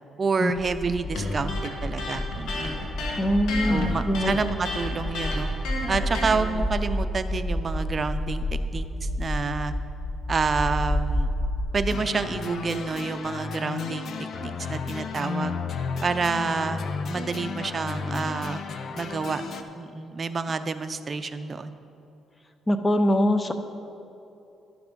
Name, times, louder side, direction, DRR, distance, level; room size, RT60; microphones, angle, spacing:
voice 1, 0.2-2.8 3.7-5.5 5.9-8.5 8.7-9.7 10.3-11.3 11.7-14.1 14.4-15.6 16.0-18.6 18.9-19.4 19.8-21.8, right 4 dB, 40° right, 10 dB, 0.5 m, -28 dB
sound 1, 0.5-11.6, left 1 dB, 40° left, 2.0 m, -30 dB
Electric guitar, 1.1-6.4, left 2 dB, 80° left, 1.5 m, -32 dB
voice 2, 3.2-4.3 22.7-23.5, left 1 dB, 20° left, 9 dB, 0.6 m, -23 dB
sound 2, 11.9-19.6, left 5 dB, 60° left, 0.6 m, -33 dB
11.5 x 5.9 x 5.2 m, 2.8 s
cardioid pair, 90°, 0 cm